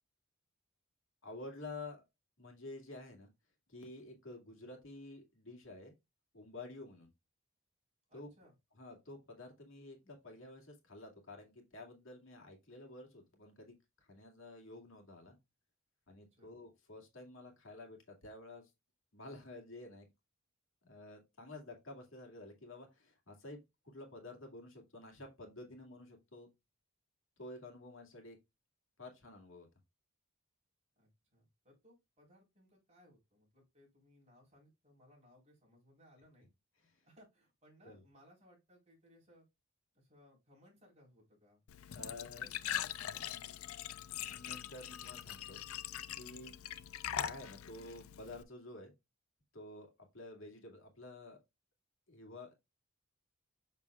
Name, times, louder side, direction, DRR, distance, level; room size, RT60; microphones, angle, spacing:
voice 1, 1.2-2.0 2.4-3.3 3.7-5.9 6.3-7.1 8.1-8.3 8.8-13.7 14.1-15.4 16.1-18.7 19.1-20.1 20.8-23.6 23.8-26.5 27.4-28.4 29.0-29.7 37.8-38.0 41.9-42.6 44.3-45.6 46.1-46.5 47.2-48.9 49.5-49.9 50.1-51.4 52.1-52.5, left 2 dB, 65° left, 2 dB, 2.3 m, -50 dB
voice 2, 8.1-8.6 16.3-16.5 31.0-36.5 37.0-39.5 39.9-41.6 41.9-43.7, equal, 30° right, -3 dB, 4.2 m, -65 dB
Glass / Trickle dribble / Fill (with liquid), 41.7-48.4, left 10 dB, 85° left, 0.5 m, -42 dB
7.2 x 6.5 x 2.4 m, 0.22 s
head